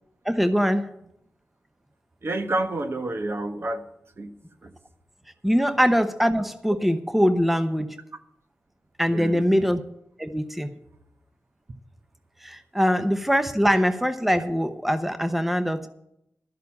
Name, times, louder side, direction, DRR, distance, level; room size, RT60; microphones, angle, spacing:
voice 1, 0.2-0.9 5.4-8.0 9.0-9.8 10.2-10.7 12.4-15.9, equal, 5° right, 9 dB, 0.9 m, -22 dB
voice 2, 2.2-3.8 4.2-4.3 4.6-4.7 9.1-9.5, right 2 dB, 50° right, 6 dB, 1.3 m, -29 dB
12.0 x 6.8 x 8.5 m, 0.79 s
cardioid pair, 55°, 5 cm